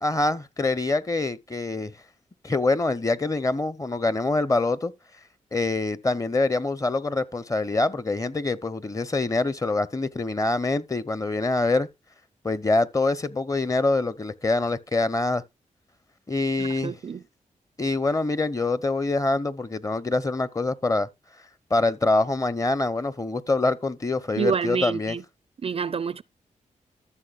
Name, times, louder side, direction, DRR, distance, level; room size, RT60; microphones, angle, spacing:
voice 1, 0.0-1.9 2.4-4.9 5.5-11.9 12.4-15.4 16.3-17.0 17.8-21.1 21.7-25.2, left 2 dB, 25° left, 0.8 m, -25 dB
voice 2, 16.6-17.2 24.4-25.2 25.6-26.2, right 6 dB, 45° right, 0.4 m, -28 dB
14.0 x 6.4 x 2.4 m
cardioid pair, 60°, 14 cm